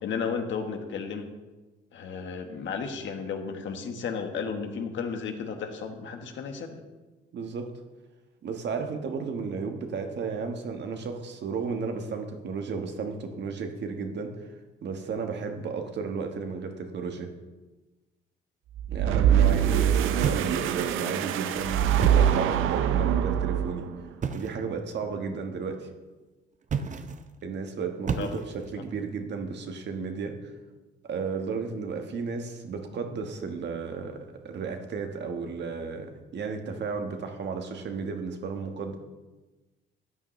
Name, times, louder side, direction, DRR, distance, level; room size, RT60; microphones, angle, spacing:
voice 1, 0.0-1.3 1.9-6.8 25.2-25.3 28.2-28.3, left 6 dB, 70° left, 5 dB, 1.4 m, -33 dB
voice 2, 7.3-7.7 8.4-14.5 14.8-17.3 18.9-23.9 24.3-25.9 27.4-30.4 31.0-39.0, right 5 dB, 60° right, 5 dB, 1.4 m, -33 dB
sound 1, 18.8-24.0, right 9 dB, 90° right, 0.5 m, -24 dB
sound 2, 20.2-21.0 21.9-22.6 24.2-24.7 26.6-27.3 28.1-28.8, right 6 dB, 40° right, 0.7 m, -32 dB
13.0 x 9.0 x 3.2 m, 1.2 s
cardioid pair, 90°, 20 cm